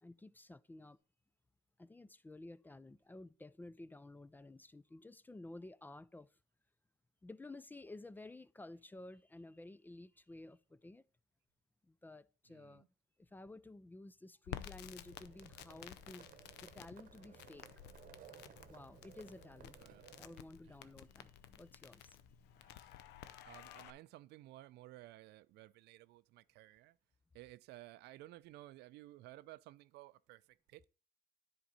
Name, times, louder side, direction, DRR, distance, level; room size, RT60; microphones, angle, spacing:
voice 1, 0.0-1.0 1.8-6.3 7.2-11.0 11.8-12.8 13.2-16.3 16.6-17.7 18.7-19.8 20.2-22.2, left 2 dB, 10° left, 0.3 m, -53 dB
voice 2, 12.5-12.9 19.8-20.1 20.6-20.8 22.6-22.9 23.4-27.0 27.3-30.9, right 16 dB, 80° right, 0.4 m, -56 dB
Crackle, 14.4-23.9, left 12 dB, 85° left, 0.6 m, -53 dB
Livestock farm animals working animals, 14.6-20.4, right 8 dB, 55° right, 0.9 m, -60 dB
10.0 x 4.4 x 4.0 m
cardioid pair, 110°, 17 cm